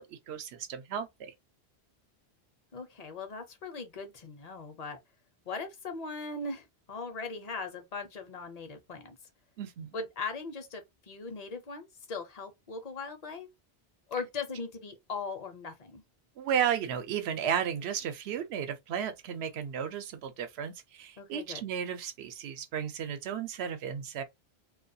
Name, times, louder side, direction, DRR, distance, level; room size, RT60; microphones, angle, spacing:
voice 1, 0.0-1.3 9.6-9.9 16.4-24.2, right 8 dB, 75° right, 0.8 m, -34 dB
voice 2, 2.7-5.0 5.5-9.2 9.9-13.5 14.1-16.0 21.2-21.6, left 4 dB, 45° left, 0.6 m, -39 dB
2.3 x 2.3 x 2.6 m
omnidirectional pair, 1.1 m